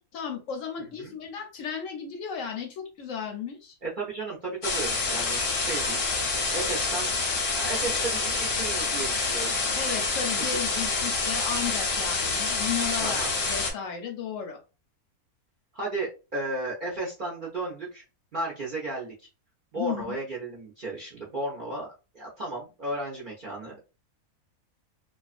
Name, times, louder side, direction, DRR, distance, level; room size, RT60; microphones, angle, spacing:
voice 1, 0.0-3.8 9.8-14.6 19.8-20.2, left 7 dB, 70° left, 4 dB, 0.9 m, -34 dB
voice 2, 3.8-6.0 6.5-7.1 7.5-9.6 13.0-13.3 15.7-18.0 18.3-19.1 19.7-21.9 22.1-23.8, right 2 dB, 50° right, -3 dB, 0.6 m, -34 dB
sound 1, 4.6-13.7, left 3 dB, 50° left, 0.7 m, -27 dB
2.4 x 2.3 x 2.4 m, 0.31 s
omnidirectional pair, 1.5 m